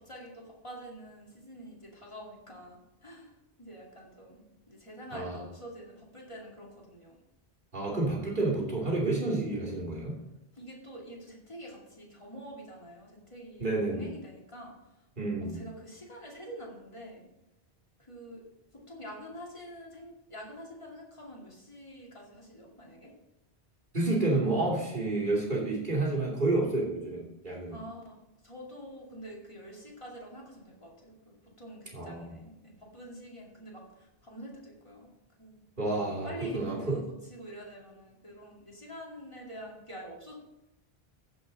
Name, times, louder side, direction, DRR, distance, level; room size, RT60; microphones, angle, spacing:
voice 1, 0.0-3.3 3.6-7.2 10.6-14.8 15.5-17.2 18.0-18.4 18.7-23.1 27.7-35.1 35.4-35.6 36.2-37.0 37.3-40.3, equal, 30° left, -3 dB, 2.5 m, -46 dB
voice 2, 7.7-10.2 13.6-14.1 15.2-15.7 23.9-27.8 31.9-32.3 35.8-37.0, right 2 dB, 50° right, -4 dB, 2.9 m, -30 dB
15.0 x 5.5 x 4.1 m, 0.90 s
omnidirectional pair, 1.1 m